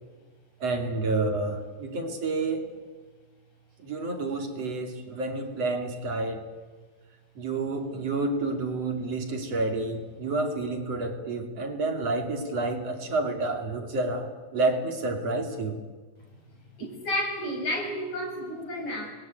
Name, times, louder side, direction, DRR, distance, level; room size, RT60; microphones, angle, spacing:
voice 1, 0.6-2.6 3.8-6.4 7.4-15.8, right 3 dB, 55° right, 5 dB, 3.7 m, -29 dB
voice 2, 16.8-19.1, left 1 dB, 70° left, 1 dB, 8.5 m, -31 dB
28.0 x 21.5 x 9.3 m, 1.4 s
omnidirectional pair, 3.4 m